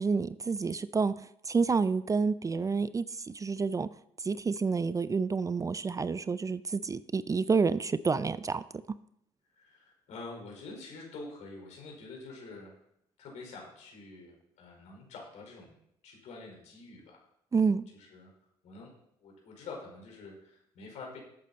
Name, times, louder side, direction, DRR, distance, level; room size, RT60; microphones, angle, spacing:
voice 1, 0.0-3.9 4.2-8.6 17.5-17.8, right 4 dB, 25° right, 16 dB, 0.5 m, -29 dB
voice 2, 9.5-12.8 13.2-17.2 17.5-18.3 18.6-18.9 19.2-21.2, left 3 dB, 65° left, -1 dB, 4.7 m, -47 dB
12.5 x 8.4 x 4.2 m, 0.73 s
hypercardioid pair, 60°, 13 cm